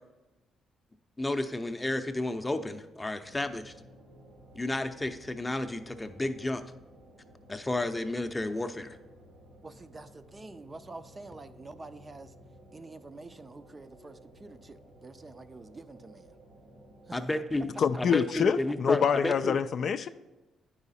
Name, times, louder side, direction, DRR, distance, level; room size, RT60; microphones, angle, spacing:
voice 1, 1.2-3.7 4.5-6.6 7.5-8.9 17.1-17.7 18.0-19.6, left 2 dB, 15° left, 8 dB, 0.6 m, -32 dB
sound 1, 3.2-18.0, equal, 90° right, 1.5 m, -55 dB
voice 2, 9.6-12.3 12.7-16.4 17.1-17.4, right 3 dB, 25° right, 10 dB, 0.4 m, -47 dB
voice 3, 17.8-20.1, left 6 dB, 55° left, 10 dB, 0.3 m, -26 dB
9.7 x 4.9 x 4.1 m, 1.1 s
cardioid pair, 90°, 0 cm